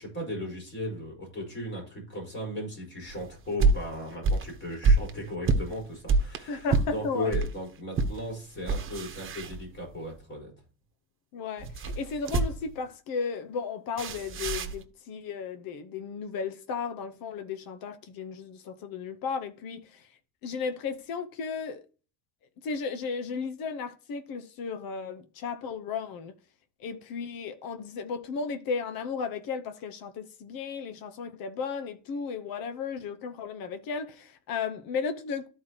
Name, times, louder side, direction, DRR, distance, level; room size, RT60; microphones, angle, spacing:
voice 1, 0.0-10.5, left 1 dB, 30° left, 4.9 m, -36 dB
sound 1, 3.1-7.5 7.9-8.2 8.6-10.0 11.6-12.8 14.0-14.8, right 3 dB, 35° right, 1.1 m, -27 dB
voice 2, 6.5-7.3 11.3-20.1 20.4-21.8 22.6-26.4 26.8-35.5, left 5 dB, 70° left, 1.0 m, -34 dB
13.5 x 4.7 x 3.0 m
cardioid pair, 155°, 36 cm